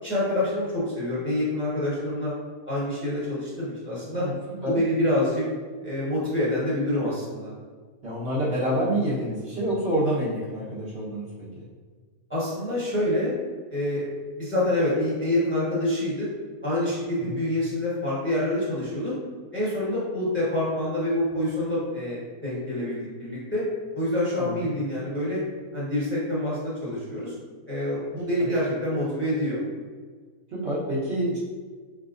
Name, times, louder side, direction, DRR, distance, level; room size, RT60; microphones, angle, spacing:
voice 1, 0.0-2.3 2.6-4.3 4.7-5.4 5.8-7.5 12.3-13.3 13.7-14.0 14.3-16.3 16.6-19.1 19.5-23.6 23.9-25.4 25.7-27.3 27.7-29.6, left 1 dB, 10° left, -8 dB, 1.3 m, -26 dB
voice 2, 8.0-11.6 17.2-17.4 24.4-24.7 28.1-28.5 30.5-31.4, right 1 dB, 50° right, -8 dB, 1.3 m, -28 dB
5.5 x 3.5 x 2.5 m, 1.5 s
omnidirectional pair, 1.5 m